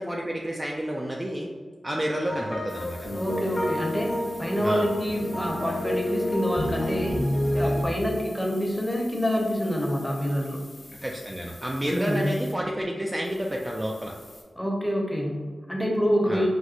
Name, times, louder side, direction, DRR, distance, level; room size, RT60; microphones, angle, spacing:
voice 1, 0.0-1.5 1.8-3.0 4.6-4.9 10.9-14.1 16.3-16.5, equal, 25° right, -1 dB, 0.3 m, -30 dB
sound 1, 2.3-7.8, left 1 dB, 50° left, 0.9 m, -29 dB
sound 2, 2.7-12.5 13.2-14.4, left 2 dB, 85° left, 0.8 m, -48 dB
voice 2, 3.1-7.3 7.5-10.6 11.8-12.3 14.6-16.5, equal, 5° left, -1 dB, 0.7 m, -27 dB
4.1 x 2.1 x 2.5 m, 1.5 s
cardioid pair, 55°, 0 cm